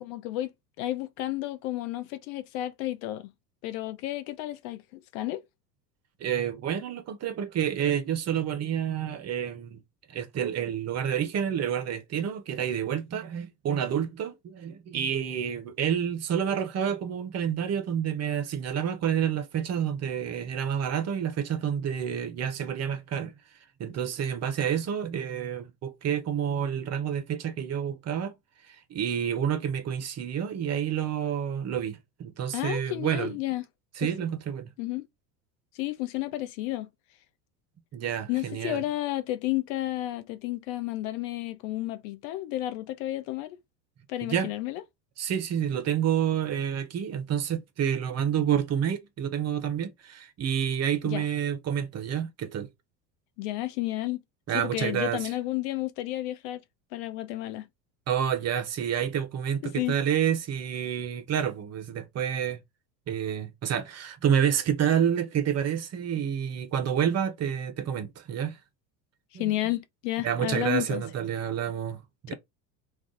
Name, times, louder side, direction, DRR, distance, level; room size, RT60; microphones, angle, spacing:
voice 1, 0.0-3.3 3.6-5.4 32.5-33.6 34.0-34.1 34.8-35.1 35.7-36.9 38.3-43.6 44.1-44.8 51.0-51.3 53.4-54.2 54.5-56.6 56.9-57.7 59.6-60.0 69.3-71.0 72.3-72.4, left 15 dB, 55° left, 0.5 m, -32 dB
voice 2, 6.2-9.8 10.1-23.3 23.8-28.3 28.6-33.4 34.0-34.7 37.9-38.8 44.2-44.5 45.2-52.7 54.5-55.2 58.1-62.6 63.1-68.6 69.3-69.5 70.2-72.3, right 9 dB, 30° right, 0.7 m, -29 dB
2.4 x 2.4 x 3.7 m
hypercardioid pair, 80°, 50 cm